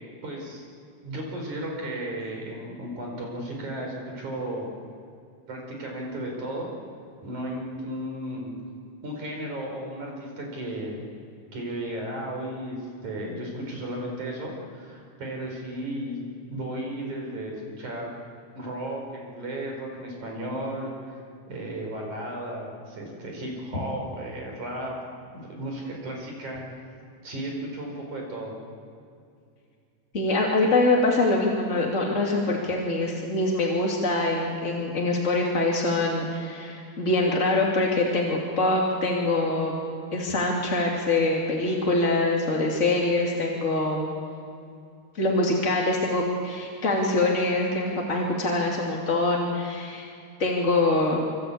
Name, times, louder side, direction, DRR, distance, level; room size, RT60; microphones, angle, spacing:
voice 1, 0.2-0.6 1.0-4.7 5.5-6.7 7.2-8.5 9.0-11.0 11.5-16.2 16.5-18.1 18.5-21.2 21.5-25.0 25.3-26.6 27.2-28.5, right 1 dB, 45° right, 0 dB, 5.9 m, -34 dB
voice 2, 30.1-39.8 40.1-44.1 45.1-50.1 50.4-51.2, left 2 dB, 25° left, -2 dB, 1.9 m, -24 dB
26.0 x 25.5 x 8.6 m, 2.4 s
omnidirectional pair, 5.1 m